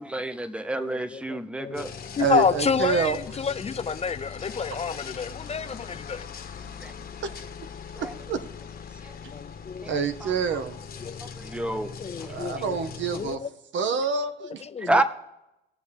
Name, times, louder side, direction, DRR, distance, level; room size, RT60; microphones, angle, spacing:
voice 1, 0.0-1.9 4.6-4.7 6.8-6.9 8.0-8.1 9.0-9.1 9.8-9.9 10.2-10.3 11.4-11.9 12.2-12.4 14.8-15.0, right 2 dB, 5° right, 0.7 m, -28 dB
voice 2, 0.8-1.9 2.2-6.2 9.3-10.0 11.0-11.3 12.0-12.8 13.1-13.5 14.6-15.0, left 5 dB, 30° left, 0.5 m, -29 dB
sound 1, 1.7-13.4, left 6 dB, 50° left, 1.1 m, -40 dB
voice 3, 2.2-3.2 7.2-7.3 8.0-8.4 9.9-10.8 12.3-13.4 13.7-14.6, right 5 dB, 70° right, 1.0 m, -27 dB
20.0 x 6.8 x 3.5 m
cardioid pair, 90°, 20 cm